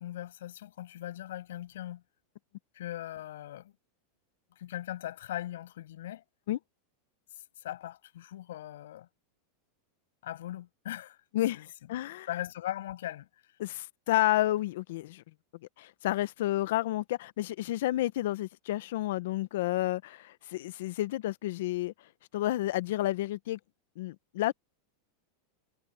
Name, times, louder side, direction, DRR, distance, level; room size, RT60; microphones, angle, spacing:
voice 1, 0.0-2.0 2.7-3.7 4.6-6.2 7.6-9.1 10.2-11.2 11.5-11.7 12.3-13.5, left 13 dB, 85° left, 7.4 m, -39 dB
voice 2, 11.3-12.3 13.6-15.2 15.8-21.9 22.3-23.6 24.0-24.5, left 15 dB, 65° left, 0.8 m, -30 dB
supercardioid pair, 165°, 0 cm